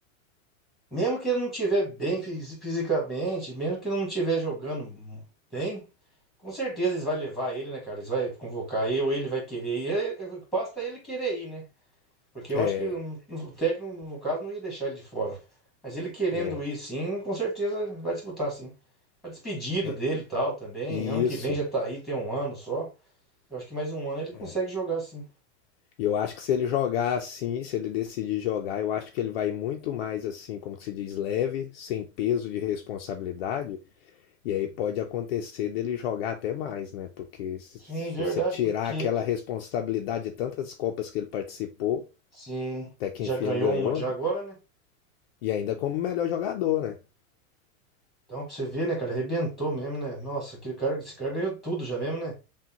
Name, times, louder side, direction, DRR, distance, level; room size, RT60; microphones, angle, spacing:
voice 1, 0.9-5.2 5.5-5.8 6.4-11.6 12.3-15.4 15.8-18.7 19.2-22.9 23.5-25.2 37.8-38.6 38.9-39.1 42.4-42.9 43.2-44.6 48.3-52.3, right 2 dB, ahead, 1.4 m, -30 dB
voice 2, 12.5-12.9 16.3-16.6 19.8-19.9 20.9-21.6 24.3-24.5 26.0-33.8 34.4-38.1 38.5-42.0 43.0-44.1 45.4-47.0, left 10 dB, 50° left, 0.5 m, -29 dB
6.0 x 2.2 x 2.8 m
supercardioid pair, 170°, 41 cm